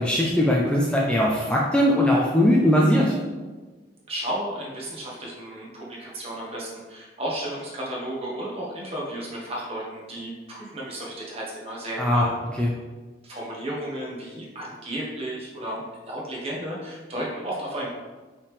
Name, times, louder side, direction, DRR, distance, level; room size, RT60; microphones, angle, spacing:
voice 1, 0.0-3.1 12.0-12.3 12.6-12.7, equal, 5° left, -3 dB, 0.5 m, -20 dB
voice 2, 4.1-12.3 13.2-17.9, right 1 dB, 35° right, -4 dB, 1.5 m, -33 dB
5.6 x 5.1 x 3.4 m, 1.3 s
head